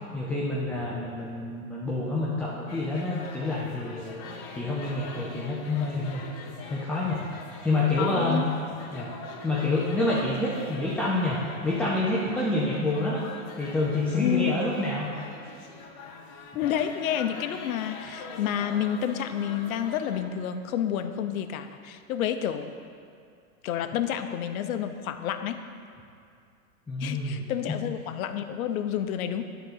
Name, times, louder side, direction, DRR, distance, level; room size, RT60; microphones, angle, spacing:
voice 1, 0.1-6.3 6.7-7.4 7.6-8.5 8.9-9.1 9.4-13.2 13.6-15.2 26.9-27.8, left 2 dB, 5° left, -5 dB, 0.5 m, -28 dB
sound 1, 2.7-20.2, left 4 dB, 45° left, 1.0 m, -43 dB
voice 2, 8.0-8.4 14.2-14.5 16.5-22.7 23.6-25.6 27.0-29.4, left 10 dB, 75° left, 9 dB, 0.7 m, -29 dB
10.0 x 3.9 x 6.5 m, 2.3 s
supercardioid pair, 135°, 42 cm